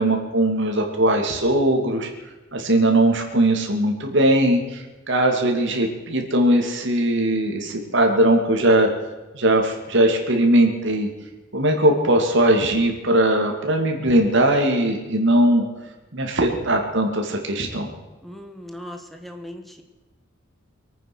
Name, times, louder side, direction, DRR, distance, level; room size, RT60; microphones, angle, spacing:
voice 1, 0.0-2.1 2.5-8.9 9.3-11.1 11.5-15.6 16.1-17.9, right 1 dB, 65° right, 2 dB, 2.7 m, -19 dB
voice 2, 18.2-19.8, left 1 dB, ahead, 4 dB, 1.6 m, -38 dB
23.5 x 9.2 x 6.4 m, 1.1 s
head